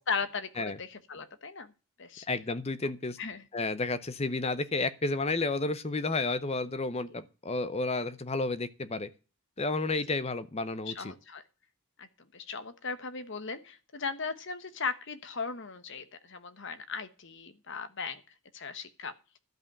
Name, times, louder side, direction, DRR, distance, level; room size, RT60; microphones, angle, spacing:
voice 1, 0.1-1.7 2.0-2.3 3.2-3.4 10.9-11.4 12.0-12.1 12.3-18.2 18.5-19.1, left 5 dB, 55° left, 1.1 m, -37 dB
voice 2, 2.3-3.2 3.5-9.1 9.6-11.1, left 3 dB, 30° left, 0.7 m, -31 dB
12.0 x 5.5 x 8.7 m
head